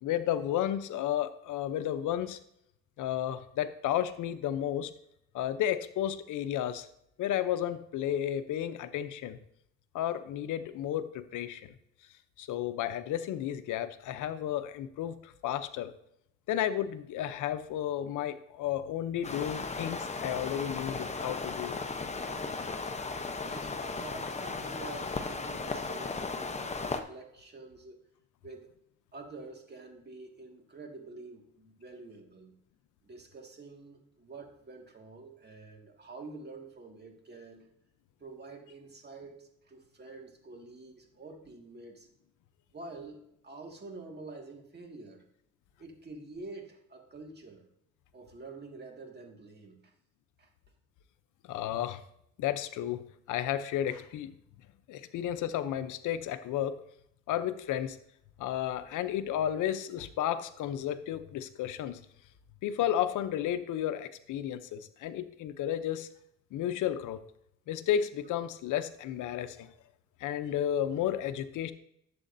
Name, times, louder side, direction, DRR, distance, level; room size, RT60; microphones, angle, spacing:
voice 1, 0.0-2.4 3.0-4.9 5.3-6.9 7.2-9.4 9.9-11.7 12.4-15.9 16.5-21.8 51.5-52.0 52.4-54.3 54.9-56.8 57.3-58.0 58.4-62.0 62.6-66.1 66.5-67.2 67.7-69.7 70.2-71.7, left 11 dB, 80° left, 11 dB, 0.7 m, -32 dB
sound 1, 19.2-27.0, left 3 dB, 20° left, 0.8 m, -36 dB
voice 2, 23.4-28.0 28.4-28.7 29.1-32.6 33.0-37.7 38.2-42.1 42.7-45.3 45.8-47.7 48.1-49.9 50.4-50.5, right 3 dB, 35° right, 2 dB, 2.0 m, -47 dB
11.5 x 7.6 x 2.7 m, 0.76 s
cardioid pair, 90°, 30 cm